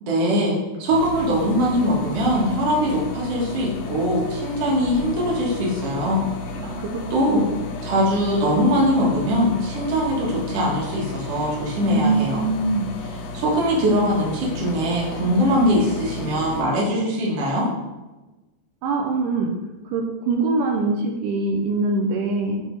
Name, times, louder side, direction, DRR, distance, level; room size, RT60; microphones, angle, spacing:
voice 1, 0.0-6.2 7.1-7.4 7.8-12.4 13.3-17.7, equal, 55° right, -4 dB, 2.0 m, -21 dB
sound 1, 0.9-16.6, left 2 dB, 80° left, 1.9 m, -33 dB
voice 2, 6.6-6.9 7.3-7.5 11.9-12.9 18.8-19.5 19.9-22.6, right 3 dB, 80° right, 1 dB, 2.0 m, -23 dB
10.5 x 3.5 x 3.1 m, 1.1 s
omnidirectional pair, 4.3 m